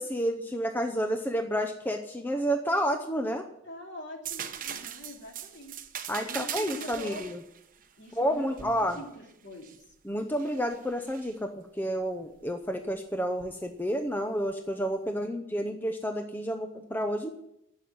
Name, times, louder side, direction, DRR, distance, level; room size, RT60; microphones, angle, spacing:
voice 1, 0.0-3.4 6.1-7.4 8.2-9.0 10.0-17.3, equal, 10° left, 5 dB, 0.7 m, -30 dB
voice 2, 3.6-5.7 6.2-7.2 8.0-9.9 15.2-15.4, left 2 dB, 55° left, 1 dB, 3.0 m, -44 dB
sound 1, 4.2-9.8 10.4-11.3 13.4-13.6, right 9 dB, 40° right, 0.9 m, -40 dB
11.5 x 7.7 x 9.5 m, 0.78 s
head